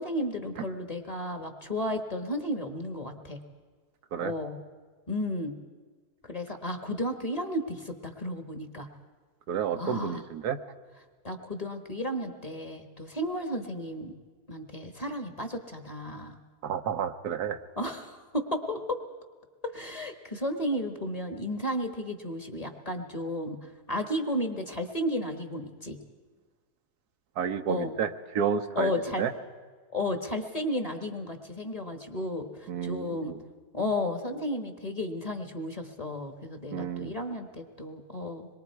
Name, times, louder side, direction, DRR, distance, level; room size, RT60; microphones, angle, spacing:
voice 1, 0.0-3.4 4.2-4.6 5.1-5.5 6.2-8.9 9.8-10.2 11.2-14.1 14.5-16.4 17.8-19.0 19.6-26.0 27.7-27.9 28.7-29.2 29.9-33.3 33.7-38.5, left 1 dB, 25° left, 5 dB, 1.3 m, -33 dB
voice 2, 9.5-10.6 16.6-17.6 27.4-28.9 29.2-29.3 32.7-33.4 36.7-37.1, right 8 dB, 85° right, 8 dB, 1.4 m, -30 dB
26.0 x 22.0 x 4.7 m, 1.5 s
omnidirectional pair, 1.6 m